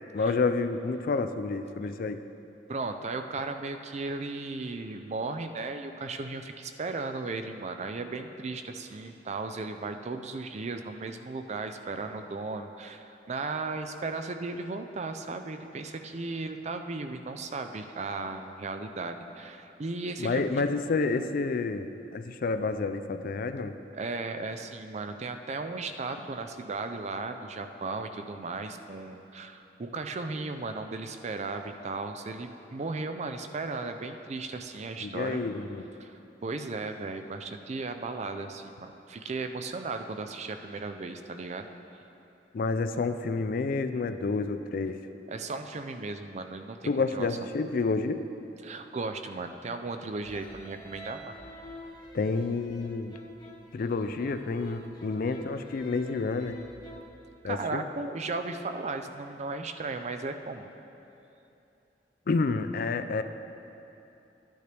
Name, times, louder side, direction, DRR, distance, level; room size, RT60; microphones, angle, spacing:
voice 1, 0.1-2.2 20.2-23.7 35.0-35.8 42.5-45.0 46.8-48.2 52.1-53.2 53.7-56.6 57.4-57.8 62.3-63.2, left 4 dB, 55° left, 10 dB, 0.4 m, -29 dB
voice 2, 2.7-20.5 23.9-35.4 36.0-41.7 45.3-47.3 48.6-51.3 57.4-60.7, right 3 dB, 40° right, 7 dB, 0.5 m, -36 dB
sound 1, 50.2-57.0, equal, 25° left, 1.1 m, -47 dB
12.5 x 9.4 x 3.4 m, 2.9 s
head